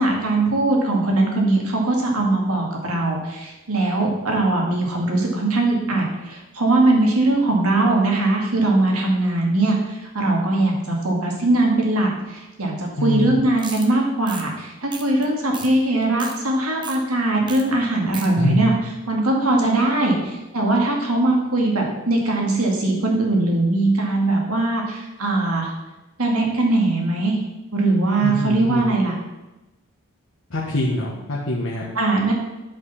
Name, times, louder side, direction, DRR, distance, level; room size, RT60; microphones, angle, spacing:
voice 1, 0.0-25.7 26.2-27.4 27.7-29.2 31.9-32.3, right 2 dB, 90° right, 0 dB, 2.3 m, -20 dB
voice 2, 13.0-13.3 18.4-18.8 28.2-28.9 30.5-31.8, left 1 dB, 70° left, -4 dB, 1.4 m, -24 dB
sound 1, 13.6-13.9 14.2-14.4 14.9-15.2 15.5-15.7 16.0-16.4 16.8-17.0 17.5-17.6 17.9-18.3, right 4 dB, 20° right, 1.0 m, -35 dB
10.5 x 5.2 x 5.8 m, 1.1 s
head